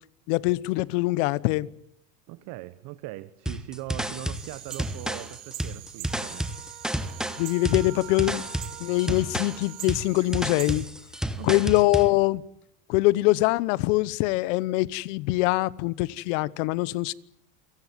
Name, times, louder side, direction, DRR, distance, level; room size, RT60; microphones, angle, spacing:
voice 1, 0.3-1.7 7.4-8.4 8.8-10.8 11.4-12.4 12.9-17.1, left 20 dB, 70° left, 1.1 m, -23 dB
voice 2, 2.3-6.5 11.3-11.7, right 18 dB, 55° right, 1.2 m, -40 dB
sound 1, 3.5-12.1, right 1 dB, ahead, 1.4 m, -31 dB
sound 2, 4.3-10.9, right 19 dB, 85° right, 1.4 m, -44 dB
Wind instrument woodwind instrument, 6.1-10.2, right 19 dB, 70° right, 1.7 m, -46 dB
29.0 x 18.5 x 9.4 m
supercardioid pair, 130°, 38 cm